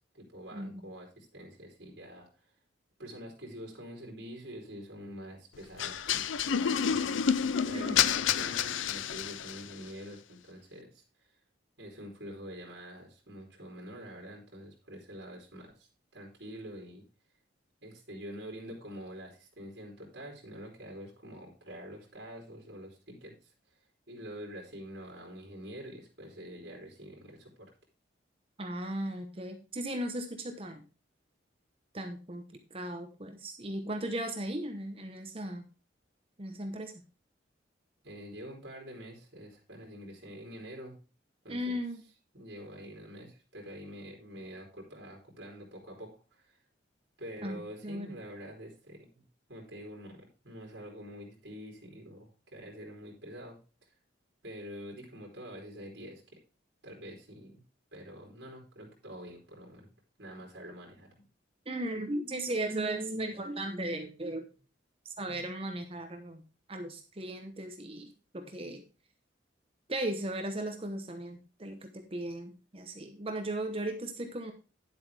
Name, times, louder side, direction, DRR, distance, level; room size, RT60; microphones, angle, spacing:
voice 1, 0.1-2.5 3.0-7.2 7.6-11.3 11.8-17.1 17.8-23.8 24.1-27.7 38.0-41.0 41.4-41.8 42.3-46.6 47.2-53.6 53.8-53.9 54.4-56.2 56.8-57.6 57.9-59.9 60.2-61.3 63.1-63.4, equal, 60° right, -1 dB, 3.7 m, -46 dB
sound 1, 5.8-9.7, left 8 dB, 80° left, 0.5 m, -29 dB
voice 2, 7.7-8.1 28.6-30.8 31.9-32.4 32.7-35.6 36.4-36.9 41.5-42.0 47.4-48.1 61.7-64.5 65.0-66.4 66.7-68.8 69.9-74.5, right 1 dB, 30° right, 6 dB, 1.0 m, -36 dB
10.0 x 8.0 x 3.4 m, 0.33 s
head